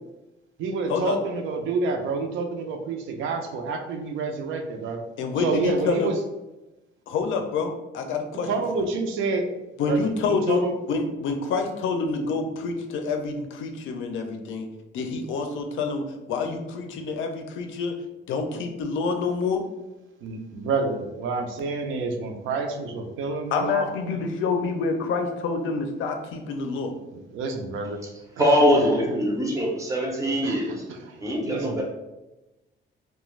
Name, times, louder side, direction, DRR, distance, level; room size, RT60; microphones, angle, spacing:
voice 1, 0.6-5.0 5.4-6.2 8.5-9.5 9.9-10.7 20.2-23.9 27.3-28.0 30.4-31.2 31.5-31.8, right 4 dB, 80° right, 5 dB, 0.4 m, -28 dB
voice 2, 5.2-6.1 7.1-8.5 8.8-8.9 9.8-14.7 14.9-17.9 18.3-19.6 23.5-26.9, left 4 dB, 80° left, 4 dB, 0.4 m, -27 dB
voice 3, 28.4-30.8 31.2-31.8, equal, 15° right, -2 dB, 0.4 m, -22 dB
2.4 x 2.2 x 3.0 m, 1.0 s
cardioid pair, 165°, 20 cm